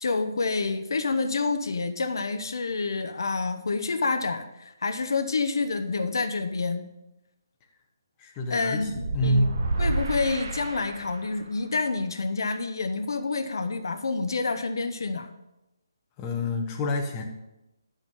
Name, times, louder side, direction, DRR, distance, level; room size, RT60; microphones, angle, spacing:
voice 1, 0.0-6.9 8.5-8.9 9.2-9.5 9.8-15.3, left 4 dB, 75° left, 8 dB, 0.9 m, -28 dB
voice 2, 8.2-9.5 16.2-17.2, left 1 dB, 20° left, 1 dB, 1.0 m, -27 dB
sound 1, 8.9-11.4, right 2 dB, 50° right, 1.2 m, -30 dB
9.9 x 5.5 x 5.4 m, 0.91 s
hypercardioid pair, 165°, 2 cm